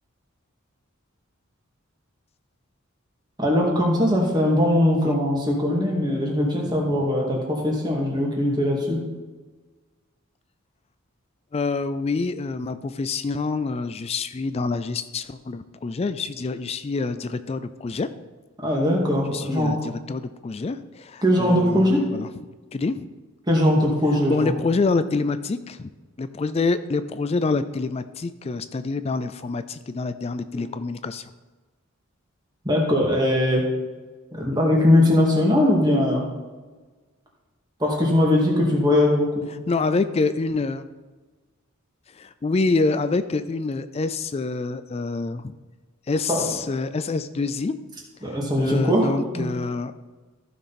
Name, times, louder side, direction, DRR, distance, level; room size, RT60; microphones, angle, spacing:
voice 1, 3.4-9.0 18.6-19.8 21.2-22.0 23.5-24.6 30.5-30.8 32.6-33.7 34.3-36.2 37.8-39.4 46.3-46.5 48.2-49.5, left 1 dB, 20° right, -2 dB, 2.2 m, -21 dB
voice 2, 11.5-18.1 19.3-22.3 22.7-23.1 24.3-25.9 26.2-31.3 39.7-40.8 42.2-45.5 46.1-47.7 48.6-49.9, left 3 dB, 30° left, 12 dB, 0.3 m, -26 dB
14.5 x 6.0 x 4.2 m, 1.3 s
head